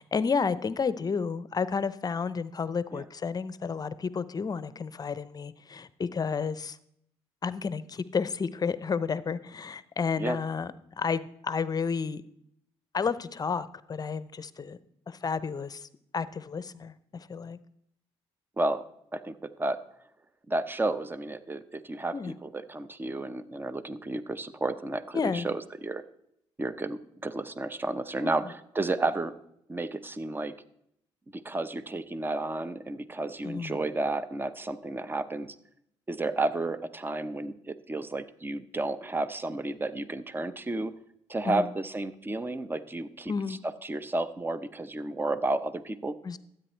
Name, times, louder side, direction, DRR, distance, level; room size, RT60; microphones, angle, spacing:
voice 1, 0.0-6.8 7.4-10.7 11.0-12.2 12.9-14.8 15.1-15.9 16.1-17.6 22.1-22.3 25.1-25.5 28.2-28.4 33.4-33.8 41.4-41.7 43.3-43.6 46.2-46.4, left 5 dB, 35° left, 16 dB, 0.7 m, -31 dB
voice 2, 19.1-19.8 20.5-26.0 26.6-29.3 29.7-30.5 31.3-35.5 36.1-40.9 41.3-46.1, right 2 dB, 20° right, 14 dB, 0.8 m, -32 dB
12.5 x 8.8 x 4.5 m, 0.75 s
supercardioid pair, 75°, 11 cm